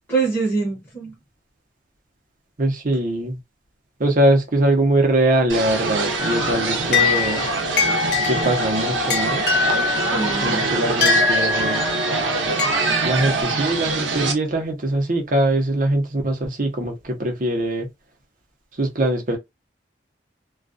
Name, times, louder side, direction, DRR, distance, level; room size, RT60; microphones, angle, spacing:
voice 1, 0.1-1.1 10.0-10.9, right 4 dB, 10° left, 0.9 m, -25 dB
voice 2, 2.6-3.4 4.0-7.5 8.2-9.5 10.4-11.8 13.0-17.9 18.8-19.4, right 1 dB, 45° right, 0.7 m, -22 dB
sound 1, 5.5-14.3, right 3 dB, 85° right, 0.7 m, -24 dB
sound 2, 6.2-13.4, left 4 dB, 65° left, 0.8 m, -24 dB
2.3 x 2.2 x 2.5 m
head